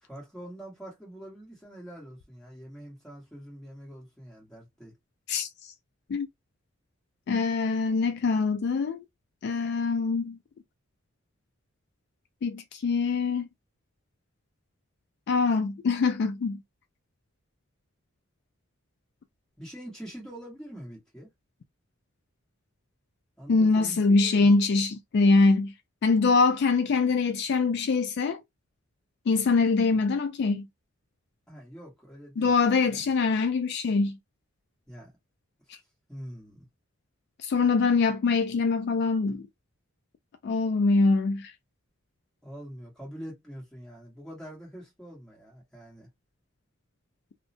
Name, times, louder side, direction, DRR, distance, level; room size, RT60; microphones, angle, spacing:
voice 1, 0.0-4.9 19.6-21.3 23.4-24.5 31.5-33.0 34.9-35.1 36.1-36.7 42.4-46.1, equal, 5° left, 1.3 m, -44 dB
voice 2, 5.3-5.7 6.1-6.3 7.3-9.0 9.4-10.4 12.4-13.4 15.3-16.6 23.5-25.7 26.0-28.4 29.3-30.7 32.4-34.2 37.4-39.5 40.4-41.5, left 4 dB, 55° left, 0.3 m, -24 dB
2.6 x 2.1 x 2.7 m
head